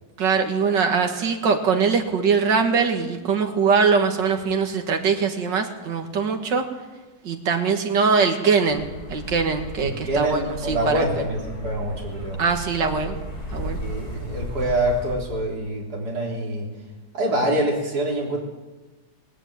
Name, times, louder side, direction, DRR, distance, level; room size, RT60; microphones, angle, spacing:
voice 1, 0.2-6.6 7.2-11.0 12.4-13.2 13.5-13.8, right 5 dB, 80° right, 4 dB, 2.4 m, -22 dB
sound 1, 8.7-15.1, equal, 60° left, 8.3 m, -35 dB
voice 2, 9.8-12.4 13.8-16.7 17.1-18.4, right 1 dB, 60° right, -2 dB, 4.3 m, -25 dB
20.0 x 18.0 x 8.9 m, 1.2 s
omnidirectional pair, 1.9 m